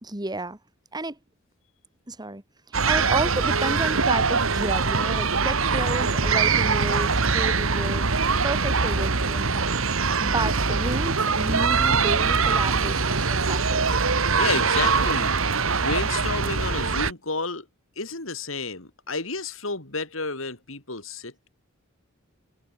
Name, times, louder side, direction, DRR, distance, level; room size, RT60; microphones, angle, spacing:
voice 1, 0.0-0.6 0.9-1.2 2.1-8.0 8.4-9.9 10.2-13.9, right 2 dB, 20° right, 2.3 m, -31 dB
sound 1, 2.7-17.1, right 4 dB, 75° right, 2.0 m, -23 dB
voice 2, 14.4-15.4 15.8-17.7 18.0-21.5, left 3 dB, 70° left, 4.5 m, -31 dB
head